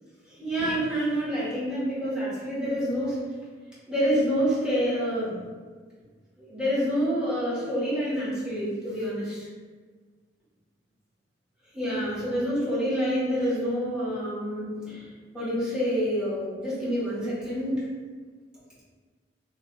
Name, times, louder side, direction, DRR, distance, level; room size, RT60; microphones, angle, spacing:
voice 1, 0.3-3.2 3.9-5.3 6.4-9.5 11.7-15.0 15.3-17.9, equal, 5° right, -11 dB, 1.2 m, -27 dB
3.1 x 2.2 x 3.1 m, 1.5 s
head